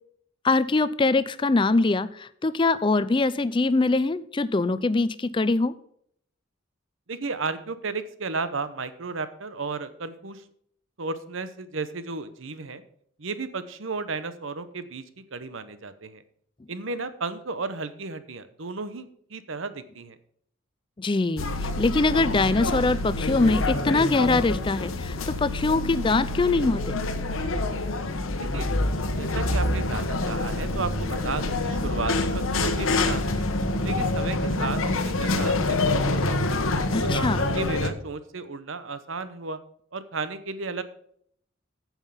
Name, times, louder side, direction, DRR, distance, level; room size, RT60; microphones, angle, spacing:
voice 1, 0.4-5.7 21.0-27.0 36.9-37.4, left 3 dB, 25° left, 15 dB, 0.4 m, -23 dB
voice 2, 7.1-10.4 11.0-12.8 13.2-16.2 16.7-20.2 28.4-28.7 29.1-33.5 33.8-36.5 37.0-39.6 39.9-40.8, right 4 dB, 75° right, 13 dB, 0.9 m, -34 dB
sound 1, 21.4-37.9, left 2 dB, 90° left, 1.1 m, -26 dB
9.0 x 7.3 x 5.7 m, 0.66 s
head